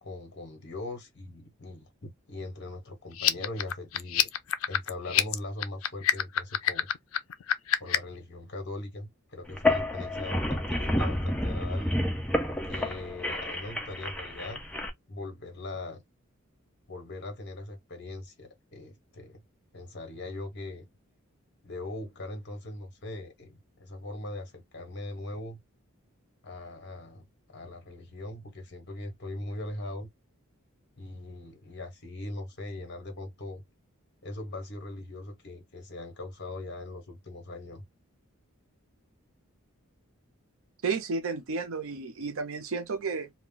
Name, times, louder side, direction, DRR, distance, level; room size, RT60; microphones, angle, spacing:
voice 1, 0.0-4.3 4.7-6.9 7.8-12.0 12.6-14.6 15.1-16.0 16.9-19.4 19.7-20.9 21.6-25.6 26.4-30.1 31.0-33.6 34.2-37.8, left 2 dB, 50° left, 1.1 m, -40 dB
sound 1, 3.1-8.2, left 11 dB, 75° left, 0.4 m, -27 dB
sound 2, 9.5-14.9, left 1 dB, 5° left, 0.4 m, -29 dB
voice 2, 40.8-43.3, right 4 dB, 70° right, 0.6 m, -32 dB
2.3 x 2.2 x 3.6 m
head